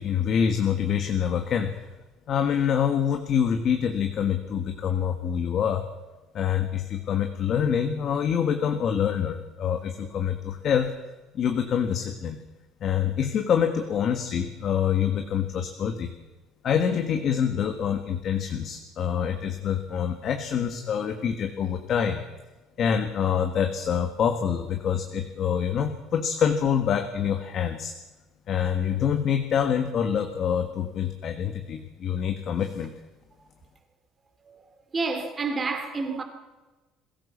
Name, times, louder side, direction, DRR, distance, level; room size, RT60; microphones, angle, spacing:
voice 1, 0.0-1.7 2.3-5.9 6.3-10.9 11.3-12.4 12.8-16.1 16.6-22.2 22.8-27.9 28.5-32.9, left 8 dB, 35° left, 1.5 m, -26 dB
voice 2, 34.9-36.2, right 4 dB, 20° right, 2.7 m, -29 dB
22.0 x 16.0 x 7.3 m
cardioid pair, 160°, 0 cm